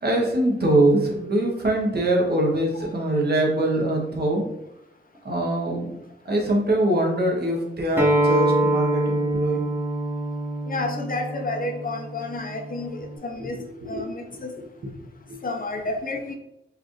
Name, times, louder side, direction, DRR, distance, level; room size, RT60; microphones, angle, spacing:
voice 1, 0.0-4.4 5.2-5.9 6.2-9.6 13.4-13.5 13.9-14.0 15.3-15.4, right 1 dB, 55° right, -1 dB, 1.0 m, -23 dB
Acoustic guitar, 8.0-13.2, right 1 dB, 10° right, 0.9 m, -25 dB
voice 2, 10.7-13.6 13.9-14.5 15.4-16.3, left 2 dB, 45° left, 4 dB, 0.5 m, -30 dB
4.7 x 2.5 x 3.1 m, 0.84 s
wide cardioid pair, 95°, 20 cm